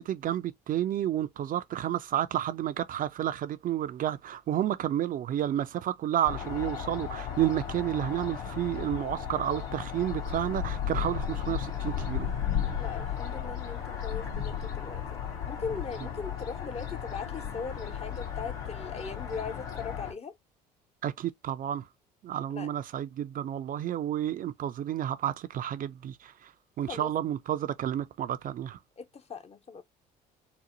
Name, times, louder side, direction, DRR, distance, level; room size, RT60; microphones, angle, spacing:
voice 1, 0.0-12.3 12.6-12.7 21.0-21.8 22.2-26.5 26.8-28.8, right 11 dB, 40° right, 0.4 m, -31 dB
sound 1, 6.2-20.1, left 8 dB, 70° left, 2.0 m, -35 dB
voice 2, 12.8-15.0 15.5-20.3 22.5-22.7 26.9-27.1 29.0-29.8, left 5 dB, 30° left, 0.7 m, -39 dB
3.8 x 2.1 x 2.9 m
hypercardioid pair, 65°, 21 cm